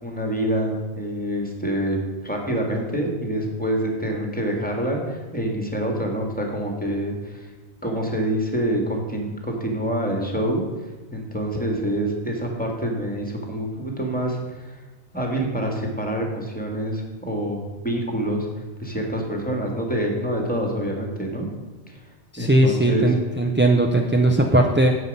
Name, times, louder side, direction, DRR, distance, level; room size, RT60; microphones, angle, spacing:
voice 1, 0.0-7.5 7.8-10.6 11.1-14.8 15.1-18.5 18.8-21.5 21.9-22.0 22.4-23.1, right 1 dB, 5° left, 1 dB, 1.9 m, -26 dB
voice 2, 22.3-24.9, right 1 dB, 15° right, 2 dB, 0.4 m, -18 dB
9.6 x 8.0 x 5.4 m, 1.3 s
omnidirectional pair, 1.2 m